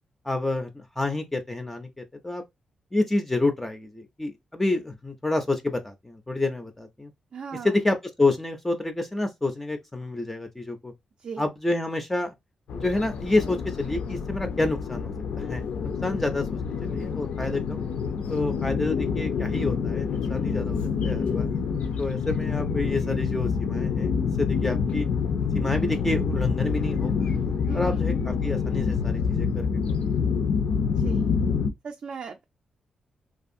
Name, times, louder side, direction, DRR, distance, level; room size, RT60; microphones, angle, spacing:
voice 1, 0.2-2.4 2.9-7.1 7.6-10.9 11.4-12.3 12.7-15.6 16.0-17.8 18.3-21.5 22.0-24.1 24.4-25.1 25.5-27.3 27.7-29.7, left 2 dB, 10° left, 0.4 m, -28 dB
voice 2, 7.3-7.7 11.2-11.4 27.7-28.1 31.0-31.3 31.8-32.4, right 6 dB, 55° right, 0.4 m, -38 dB
sound 1, 12.7-31.7, left 6 dB, 80° left, 0.4 m, -27 dB
2.6 x 2.3 x 2.5 m
wide cardioid pair, 130°, 2 cm